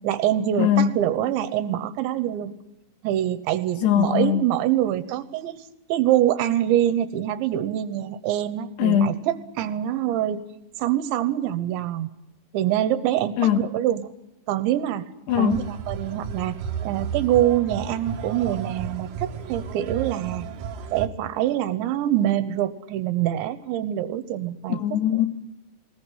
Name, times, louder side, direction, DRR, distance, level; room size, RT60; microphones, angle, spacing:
voice 1, 0.0-2.5 3.0-5.6 5.9-10.4 10.8-12.1 12.5-14.0 14.5-15.1 15.4-16.6 16.8-20.5 20.9-24.8, right 12 dB, 75° right, 14 dB, 3.2 m, -25 dB
voice 2, 0.6-1.0 3.8-4.5 8.8-9.2 13.4-13.7 15.3-15.6 24.7-25.3, left 10 dB, 70° left, 8 dB, 3.3 m, -21 dB
sound 1, 15.3-21.1, right 7 dB, 60° right, 2.4 m, -33 dB
20.5 x 20.0 x 10.0 m, 0.87 s
omnidirectional pair, 5.6 m